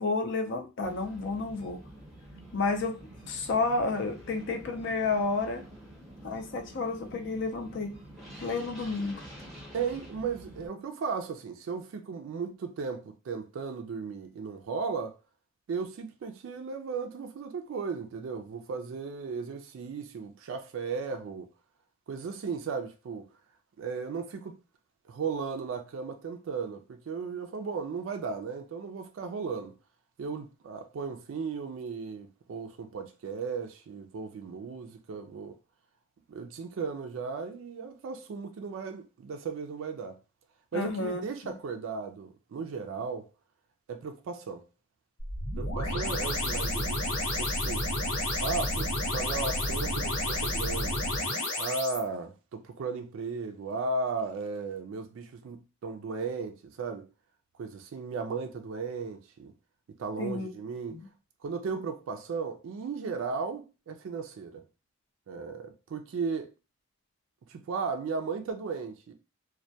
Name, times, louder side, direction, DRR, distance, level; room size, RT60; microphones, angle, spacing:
voice 1, 0.0-1.8 2.5-2.9 3.3-5.6 6.2-7.9 8.4-9.2 40.7-41.2 60.2-60.5 60.9-61.1, left 3 dB, 55° left, 0.4 m, -30 dB
sound 1, 0.8-10.7, right 1 dB, ahead, 0.7 m, -48 dB
voice 2, 9.7-15.2 15.7-21.5 22.1-23.3 23.8-24.6 25.1-29.8 30.2-35.5 36.3-40.2 40.7-43.3 43.9-44.6 45.6-47.1 47.4-47.9 48.4-51.1 51.6-57.1 57.6-59.5 60.0-61.0 61.4-64.6 65.3-66.5 67.5-69.1, right 5 dB, 65° right, 0.3 m, -36 dB
sound 2, 45.2-52.0, left 1 dB, 85° left, 0.9 m, -30 dB
2.2 x 2.1 x 2.7 m
head